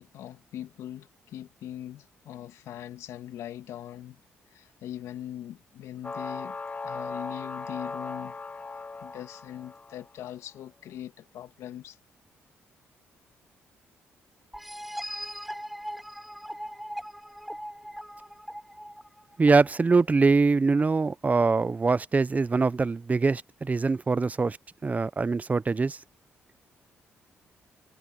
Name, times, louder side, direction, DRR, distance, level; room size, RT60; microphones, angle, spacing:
voice 1, 0.0-4.2 4.5-6.6 6.8-8.4 9.0-12.0, left 11 dB, 80° left, 2.5 m, -41 dB
sound 1, 6.0-10.1, left 3 dB, 30° left, 3.0 m, -38 dB
sound 2, 14.5-20.0, equal, ahead, 4.5 m, -39 dB
voice 2, 19.4-24.6 24.8-26.0, right 4 dB, 30° right, 0.8 m, -23 dB
supercardioid pair, 55°, 5 cm